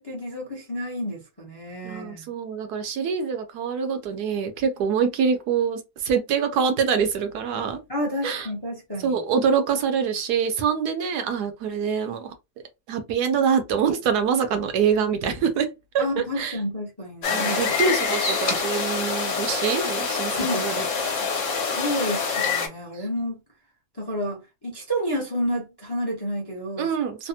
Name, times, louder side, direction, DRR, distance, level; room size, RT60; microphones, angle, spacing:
voice 1, 0.0-2.3 7.9-9.2 16.0-17.8 20.4-20.7 21.7-23.4 23.9-26.9, equal, 25° left, 0.6 m, -30 dB
voice 2, 1.8-7.8 8.2-8.5 9.0-12.3 12.9-16.6 17.3-21.3 26.8-27.3, right 6 dB, 80° right, 1.2 m, -25 dB
sound 1, 17.2-22.7, left 5 dB, 55° left, 1.0 m, -25 dB
3.3 x 2.0 x 2.7 m
omnidirectional pair, 1.7 m